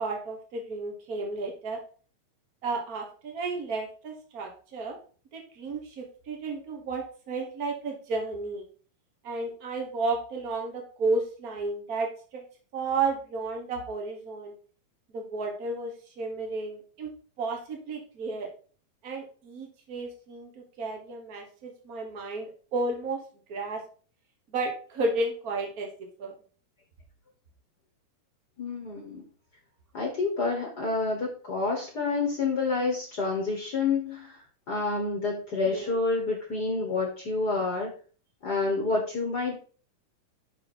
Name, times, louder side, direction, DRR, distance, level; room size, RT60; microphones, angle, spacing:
voice 1, 0.0-1.8 2.6-5.0 5.3-8.7 9.2-12.4 12.7-14.5 15.1-17.1 17.4-18.5 19.0-23.2 23.5-23.8 24.5-26.3 35.7-36.0, right 3 dB, 90° right, 2 dB, 0.8 m, -32 dB
voice 2, 28.6-29.2 29.9-34.4 34.7-37.9 38.4-39.6, left 3 dB, 50° left, 0 dB, 1.2 m, -28 dB
6.8 x 5.5 x 4.3 m, 0.41 s
omnidirectional pair, 3.8 m